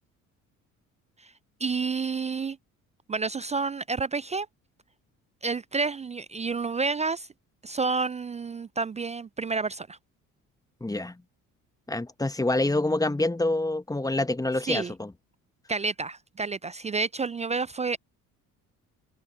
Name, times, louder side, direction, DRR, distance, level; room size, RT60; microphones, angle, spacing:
voice 1, 1.6-2.6 3.1-4.5 5.4-7.3 7.6-10.0 14.6-14.9 15.7-18.0, right 4 dB, 15° right, 0.4 m, -29 dB
voice 2, 10.8-11.2 11.9-15.1, left 2 dB, 10° left, 1.4 m, -26 dB
open air
hypercardioid pair, 50°, 41 cm